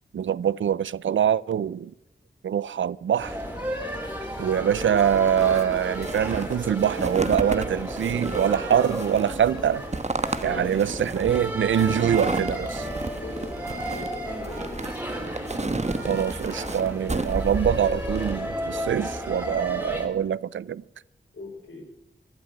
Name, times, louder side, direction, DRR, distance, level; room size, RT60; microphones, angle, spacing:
voice 1, 0.1-1.9 2.4-3.4 4.4-9.8 10.4-12.9 16.1-20.8, right 9 dB, 85° right, 0.4 m, -24 dB
sound 1, 3.2-20.1, equal, 10° right, 4.1 m, -33 dB
sound 2, 4.8-18.4, right 3 dB, 35° right, 1.2 m, -32 dB
voice 2, 10.4-10.9 13.2-15.0 21.3-21.8, left 2 dB, 80° left, 4.5 m, -40 dB
16.0 x 12.0 x 6.2 m
cardioid pair, 45°, 20 cm